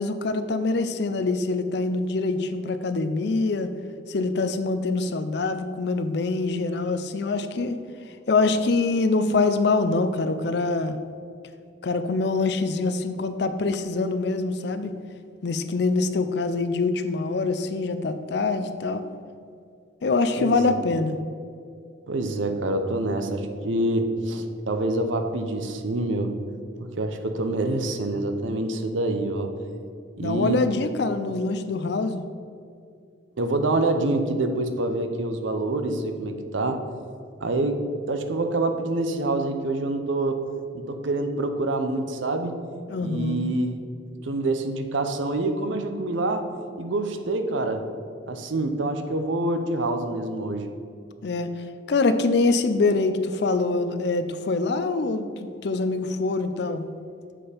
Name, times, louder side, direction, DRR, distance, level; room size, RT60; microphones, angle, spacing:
voice 1, 0.0-3.7 4.1-7.8 8.3-11.0 11.8-14.9 15.4-19.1 20.0-21.2 30.2-32.2 42.9-43.5 51.2-51.5 51.9-56.8, left 3 dB, 60° left, 10 dB, 0.4 m, -24 dB
voice 2, 20.4-20.8 22.1-26.3 26.8-29.5 30.2-30.6 33.4-36.8 37.4-37.8 38.1-40.4 40.7-42.6 43.0-43.8 44.2-46.5 46.8-47.9 48.3-50.7, right 2 dB, 75° right, 7 dB, 0.7 m, -26 dB
7.5 x 4.3 x 5.0 m, 2.4 s
head